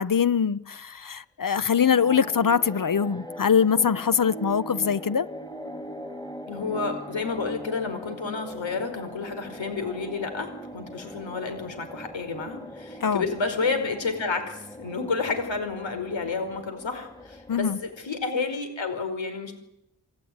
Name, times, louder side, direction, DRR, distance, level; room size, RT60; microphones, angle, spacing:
voice 1, 0.0-5.3 13.0-13.2 17.5-17.8, left 7 dB, 45° left, 0.9 m, -23 dB
sound 1, 1.7-18.2, equal, 10° left, 2.7 m, -41 dB
voice 2, 6.5-19.5, left 4 dB, 85° left, 5.0 m, -30 dB
28.0 x 18.0 x 9.6 m
wide cardioid pair, 80°, 44 cm